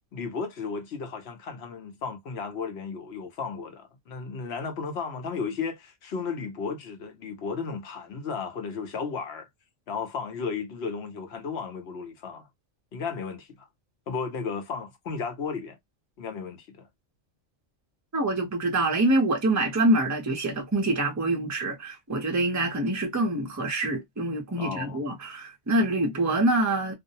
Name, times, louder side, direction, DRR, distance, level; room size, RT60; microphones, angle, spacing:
voice 1, 0.1-9.5 9.9-12.5 12.9-13.7 14.1-15.8 16.2-16.9 24.6-25.0, left 5 dB, 60° left, 0.9 m, -34 dB
voice 2, 18.1-26.9, right 1 dB, 20° right, 0.4 m, -25 dB
2.5 x 2.0 x 2.6 m
omnidirectional pair, 1.4 m